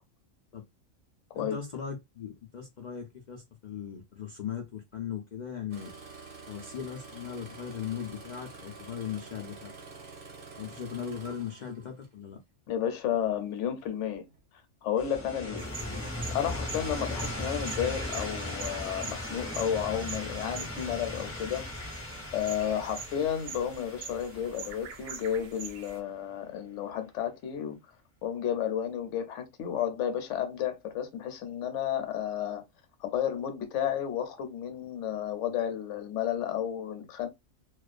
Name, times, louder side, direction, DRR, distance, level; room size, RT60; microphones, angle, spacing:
voice 1, 1.3-5.9 6.5-9.7 10.6-12.4, left 8 dB, 85° left, 0.4 m, -38 dB
Engine starting, 5.7-12.2 13.1-13.4 14.0-14.4 15.0-15.2, right 4 dB, 50° right, 0.9 m, -48 dB
voice 2, 12.7-14.2 14.8-15.6 16.3-21.7 22.3-27.8 28.2-32.6 33.0-37.3, left 9 dB, 70° left, 0.9 m, -32 dB
sound 1, 15.0-25.7, left 1 dB, 15° left, 0.4 m, -38 dB
sound 2, 15.6-26.0, right 5 dB, 70° right, 0.4 m, -45 dB
2.3 x 2.2 x 2.4 m
omnidirectional pair, 1.3 m